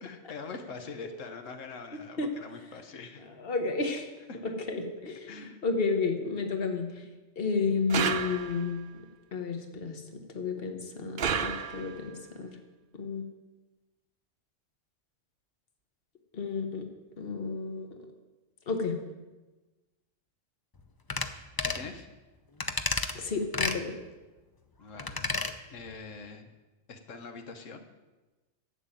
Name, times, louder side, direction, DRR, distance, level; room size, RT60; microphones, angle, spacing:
voice 1, 0.0-3.3 4.3-4.5 5.3-5.6 21.6-22.1 24.8-25.3 25.7-26.5 26.9-27.9, left 4 dB, 85° left, 6 dB, 1.4 m, -43 dB
voice 2, 3.4-4.1 4.4-6.8 7.4-8.8 9.3-10.0 10.3-12.6 12.9-13.3 16.3-16.9 17.2-17.9 18.7-18.9 23.1-23.9, left 4 dB, 50° left, 5 dB, 1.5 m, -31 dB
sound 1, 7.9-8.8 11.2-12.1, right 7 dB, 55° right, 0.8 m, -31 dB
sound 2, 21.1-21.3 21.6-21.9 22.6-23.1 23.5-23.8 25.0-25.5 25.9-26.0, left 3 dB, 25° left, 0.5 m, -30 dB
11.0 x 7.5 x 9.0 m, 1.2 s
omnidirectional pair, 1.3 m